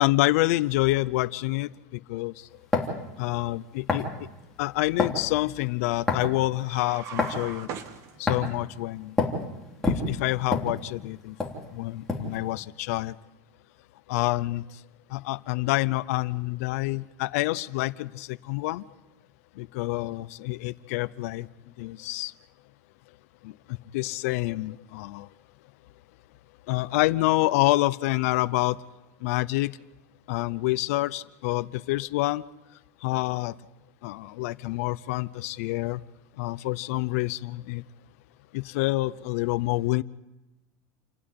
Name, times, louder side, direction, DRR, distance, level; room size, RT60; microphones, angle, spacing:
voice 1, 0.0-1.7 2.1-2.3 3.2-4.1 4.6-7.7 8.2-9.1 9.9-11.3 11.7-13.1 14.1-14.6 15.1-18.8 19.6-21.5 21.8-22.3 23.9-25.3 26.7-28.8 29.2-29.7 30.3-32.4 33.0-33.5 34.0-36.0 36.4-37.8 38.5-40.0, left 19 dB, 65° left, 17 dB, 0.7 m, -27 dB
sound 1, 2.7-3.0 3.9-4.1 5.0-5.2 6.1-6.4 7.2-7.4 8.3-8.5 9.2-9.4 9.8-11.1 11.4-11.6 12.1-12.4, left 3 dB, 5° left, 3.3 m, -26 dB
sound 2, 6.6-8.6, right 8 dB, 35° right, 1.6 m, -40 dB
29.0 x 12.5 x 9.7 m, 0.99 s
supercardioid pair, 160°, 9 cm